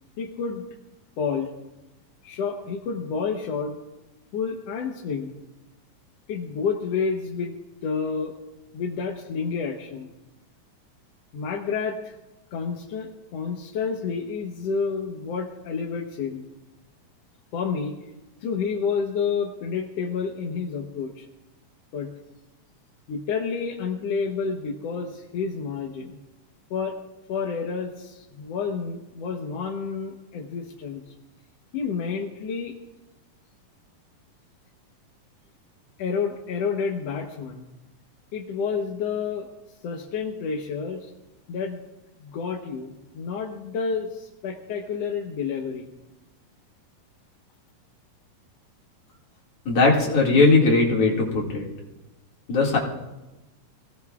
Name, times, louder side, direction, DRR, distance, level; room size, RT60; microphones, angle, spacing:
voice 1, 0.2-0.6 1.2-1.5 2.2-3.8 4.3-5.4 6.3-7.5 7.8-8.3 8.7-10.1 11.3-12.2 12.5-16.5 17.5-18.1 18.4-21.2 21.9-22.1 23.1-26.2 26.7-27.0 27.3-31.0 31.7-32.7 36.0-37.6 38.3-39.5 39.8-41.1 41.5-41.9 42.2-45.9, left 5 dB, 65° left, 1 dB, 1.7 m, -29 dB
voice 2, 49.6-51.6 52.5-52.8, left 3 dB, 50° left, -2 dB, 2.9 m, -19 dB
25.0 x 17.0 x 2.4 m, 1.0 s
omnidirectional pair, 3.8 m